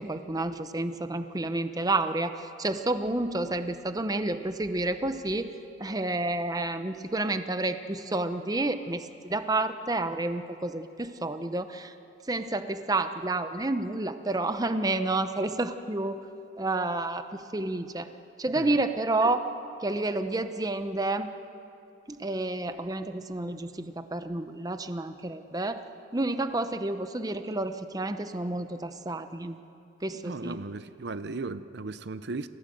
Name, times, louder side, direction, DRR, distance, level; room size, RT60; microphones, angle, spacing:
voice 1, 0.0-5.5 5.8-11.9 12.3-16.2 16.6-18.1 18.4-19.4 19.8-21.3 22.1-25.8 26.1-29.6 30.0-30.6, right 2 dB, 20° right, 9 dB, 0.8 m, -30 dB
voice 2, 30.2-32.5, right 3 dB, 60° right, 13 dB, 0.6 m, -36 dB
28.5 x 15.5 x 7.8 m, 2.7 s
head